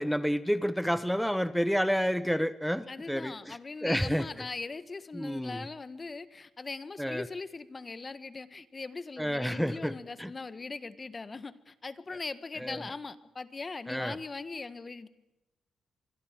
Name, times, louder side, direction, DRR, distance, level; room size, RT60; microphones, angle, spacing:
voice 1, 0.0-4.3 5.1-5.6 7.0-7.3 9.2-10.3 12.6-12.8 13.9-14.2, equal, ahead, 13 dB, 1.3 m, -30 dB
voice 2, 2.9-15.1, left 3 dB, 35° left, 14 dB, 1.6 m, -40 dB
25.5 x 22.0 x 7.6 m, 0.97 s
cardioid pair, 70°, 0 cm